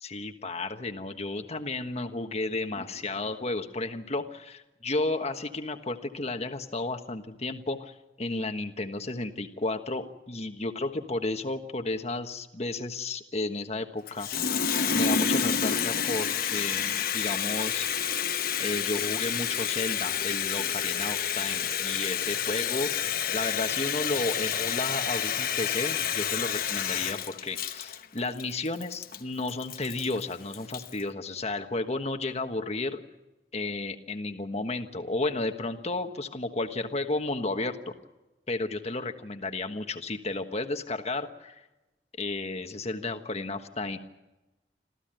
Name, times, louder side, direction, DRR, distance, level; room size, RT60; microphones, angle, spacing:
voice 1, 0.0-14.3 14.9-17.9 18.6-22.9 23.3-33.0 33.5-37.9 38.5-41.6 42.2-44.0, left 2 dB, 40° left, 6 dB, 1.4 m, -33 dB
Water tap faucet, 14.1-31.0, left 7 dB, 55° left, 1.1 m, -29 dB
27.0 x 15.0 x 9.0 m, 1.0 s
head